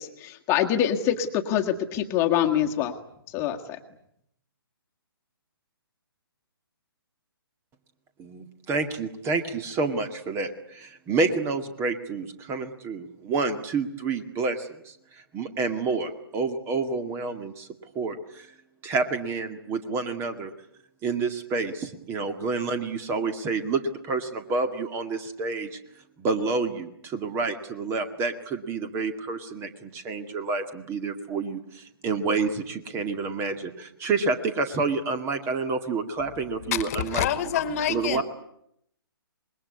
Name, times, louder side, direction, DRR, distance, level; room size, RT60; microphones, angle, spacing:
voice 1, 0.0-2.9 3.3-3.8, left 10 dB, 20° left, 3 dB, 1.8 m, -25 dB
voice 2, 8.2-15.0 15.3-17.7 18.0-18.5 18.8-20.5 21.0-25.8 26.2-37.3 37.9-38.2, right 4 dB, 20° right, 9 dB, 2.1 m, -29 dB
voice 3, 36.7-38.2, left 9 dB, 40° left, 12 dB, 1.8 m, -27 dB
26.0 x 21.5 x 9.6 m, 0.75 s
figure-of-eight pair, 135°, 13 cm